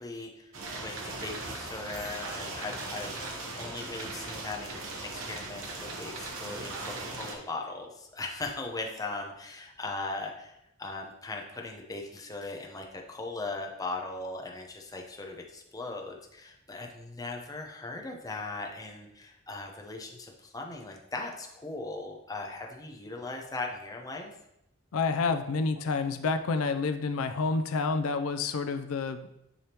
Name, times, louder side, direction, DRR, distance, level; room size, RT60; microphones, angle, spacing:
voice 1, 0.0-24.3, left 3 dB, 15° left, 1 dB, 0.7 m, -39 dB
sound 1, 0.5-7.3, right 2 dB, 70° right, 1.1 m, -39 dB
voice 2, 24.9-29.3, left 4 dB, 90° left, 8 dB, 0.4 m, -29 dB
9.7 x 3.5 x 2.9 m, 0.83 s
head